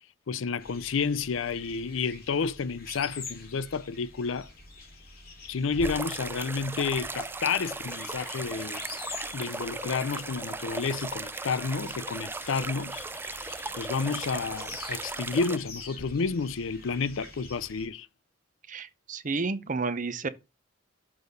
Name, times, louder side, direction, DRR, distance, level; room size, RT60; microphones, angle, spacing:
voice 1, 0.3-4.5 5.4-8.8 9.3-13.0 13.8-18.1, left 5 dB, 80° left, 0.5 m, -30 dB
sound 1, 0.6-17.9, left 3 dB, 50° left, 3.2 m, -46 dB
sound 2, 5.8-15.6, right 3 dB, 10° right, 0.4 m, -37 dB
voice 2, 18.7-20.3, right 4 dB, 40° right, 0.7 m, -31 dB
7.0 x 4.0 x 6.6 m
head